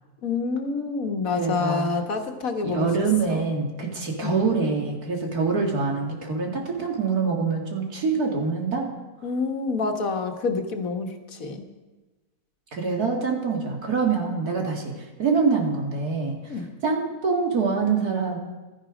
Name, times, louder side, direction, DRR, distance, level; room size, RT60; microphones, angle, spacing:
voice 1, 0.2-2.9 3.3-3.5 4.2-4.4 9.2-11.6 16.5-16.7, left 4 dB, 65° left, 4 dB, 1.7 m, -27 dB
voice 2, 1.4-1.9 2.6-8.9 12.7-14.9 15.2-16.3 16.8-18.4, right 4 dB, 85° right, 1 dB, 2.7 m, -25 dB
15.5 x 13.0 x 5.1 m, 1.2 s
omnidirectional pair, 1.6 m